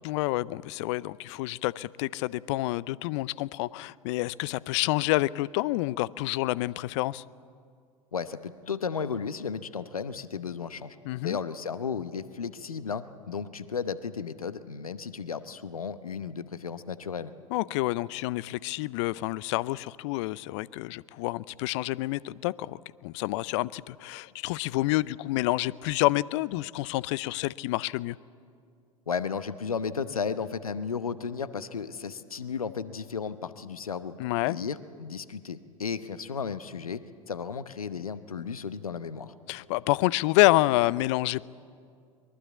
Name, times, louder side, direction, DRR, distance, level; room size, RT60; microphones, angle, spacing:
voice 1, 0.0-7.2 11.1-11.4 17.5-28.2 34.2-34.6 39.5-41.5, left 19 dB, 55° left, 21 dB, 0.6 m, -28 dB
voice 2, 8.1-11.0 11.2-17.3 29.1-34.1 34.4-37.0 37.3-39.3, left 6 dB, 85° left, 14 dB, 0.9 m, -34 dB
22.5 x 22.0 x 8.4 m, 2.2 s
figure-of-eight pair, 80°, 18 cm